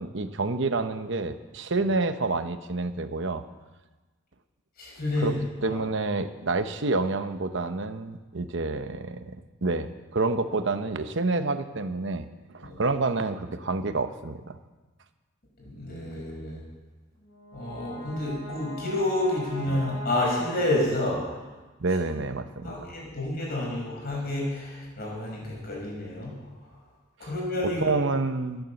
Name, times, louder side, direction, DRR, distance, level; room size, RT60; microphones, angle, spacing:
voice 1, 0.0-3.4 5.2-5.3 5.6-9.4 9.6-12.3 12.5-14.6 19.7-19.8 21.8-22.9 27.6-28.6, right 3 dB, 65° right, 9 dB, 0.9 m, -28 dB
voice 2, 4.8-5.3 5.6-5.8 12.6-12.8 15.6-16.6 17.5-21.2 22.6-26.3 27.2-28.0, left 1 dB, 50° left, -3 dB, 5.7 m, -29 dB
Brass instrument, 17.2-21.6, right 1 dB, 80° left, 3.9 m, -43 dB
13.5 x 11.0 x 7.1 m, 1.2 s
head